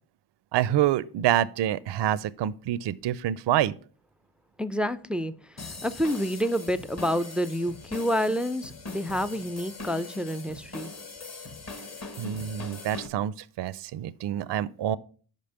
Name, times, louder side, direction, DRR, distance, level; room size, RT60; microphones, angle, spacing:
voice 1, 0.5-3.7 12.2-15.0, right 12 dB, 60° right, 0.5 m, -27 dB
voice 2, 4.6-10.9, equal, ahead, 0.3 m, -28 dB
sound 1, 5.6-13.1, left 3 dB, 30° left, 1.1 m, -41 dB
5.4 x 5.2 x 6.5 m
cardioid pair, 65°, 49 cm